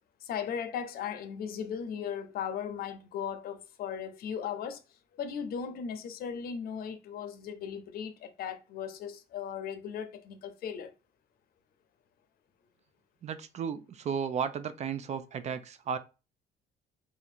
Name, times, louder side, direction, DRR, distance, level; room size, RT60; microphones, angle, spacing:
voice 1, 0.2-4.8 5.2-10.9, left 7 dB, 65° left, 0.7 m, -37 dB
voice 2, 13.2-16.0, right 7 dB, 40° right, 0.5 m, -34 dB
2.8 x 2.5 x 4.2 m
cardioid pair, 110°, 17 cm